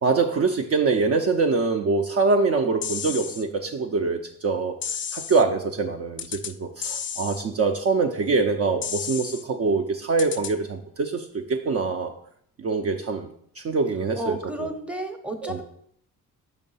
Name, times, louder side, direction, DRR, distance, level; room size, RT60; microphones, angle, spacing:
voice 1, 0.0-4.7 5.1-12.1 12.6-13.3 13.6-14.7 15.4-15.6, right 4 dB, 40° right, 3 dB, 0.5 m, -24 dB
sound 1, 2.8-3.4 4.8-5.4 6.2-6.5 6.8-7.4 8.8-9.4 10.2-10.5, left 7 dB, 35° left, 0.4 m, -32 dB
voice 2, 14.1-15.6, right 2 dB, 5° right, 6 dB, 0.7 m, -31 dB
5.4 x 3.2 x 5.4 m, 0.66 s
cardioid pair, 95°, 37 cm